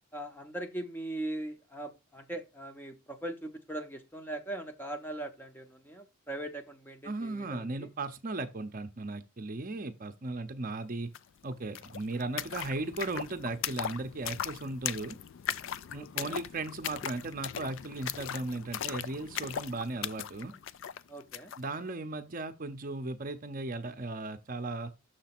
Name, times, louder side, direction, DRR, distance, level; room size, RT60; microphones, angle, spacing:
voice 1, 0.1-7.9 15.9-16.4 21.1-21.5, right 1 dB, 10° left, 0.6 m, -40 dB
voice 2, 7.0-11.1 11.4-15.2 15.9-20.5 21.6-24.9, right 2 dB, 40° right, 0.6 m, -36 dB
sound 1, 11.1-11.2 11.5-21.6, left 10 dB, 55° left, 0.3 m, -39 dB
6.5 x 3.3 x 5.9 m
head